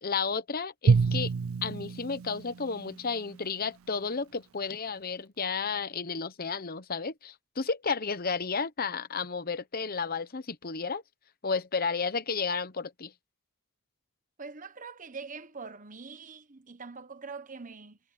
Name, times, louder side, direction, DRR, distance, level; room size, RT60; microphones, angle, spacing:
voice 1, 0.0-1.3 1.6-11.0 11.4-13.1, left 5 dB, 40° left, 0.9 m, -32 dB
Drum, 0.9-3.3, right 5 dB, 65° right, 0.4 m, -27 dB
voice 2, 14.4-18.0, right 4 dB, 35° right, 1.2 m, -43 dB
head